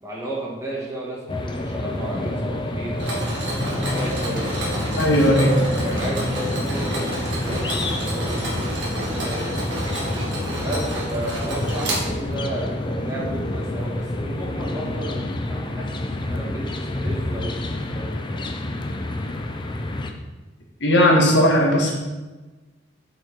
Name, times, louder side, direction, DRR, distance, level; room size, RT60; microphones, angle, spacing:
voice 1, 0.0-3.0 3.7-4.5 5.0-9.7 10.6-18.6, right 1 dB, 15° right, -5 dB, 1.6 m, -34 dB
sound 1, 1.3-20.1, left 1 dB, 25° left, 0.6 m, -28 dB
Mechanisms, 3.0-12.5, right 1 dB, 70° right, 2.1 m, -30 dB
voice 2, 5.0-5.5 20.8-21.9, equal, 70° left, 0 dB, 1.7 m, -17 dB
6.6 x 6.3 x 4.6 m, 1.2 s
head